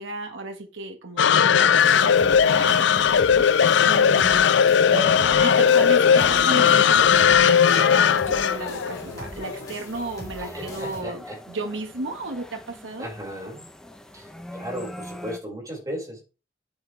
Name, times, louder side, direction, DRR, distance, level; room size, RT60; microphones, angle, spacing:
voice 1, 0.0-4.6 5.4-13.1, right 2 dB, 75° right, 1.6 m, -34 dB
sound 1, 1.2-9.6, left 7 dB, 65° left, 0.5 m, -18 dB
sound 2, 1.8-11.0, equal, 20° left, 4.6 m, -41 dB
sound 3, 4.9-15.4, equal, 5° left, 1.0 m, -39 dB
voice 2, 10.4-11.4 13.0-13.6 14.1-16.2, equal, 20° right, 5.4 m, -35 dB
9.8 x 9.6 x 3.4 m
head